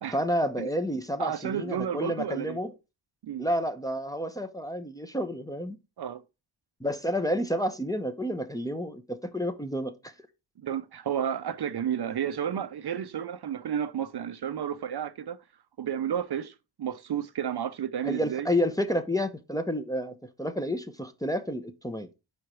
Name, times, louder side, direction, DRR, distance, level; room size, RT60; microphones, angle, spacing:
voice 1, 0.1-2.7 3.4-5.8 6.8-10.1 18.0-22.1, equal, 5° left, 0.8 m, -30 dB
voice 2, 1.2-2.6 3.2-3.5 6.0-6.2 10.6-15.4 15.8-18.5, right 9 dB, 55° right, 0.6 m, -32 dB
5.0 x 4.6 x 4.6 m
cardioid pair, 85°, 49 cm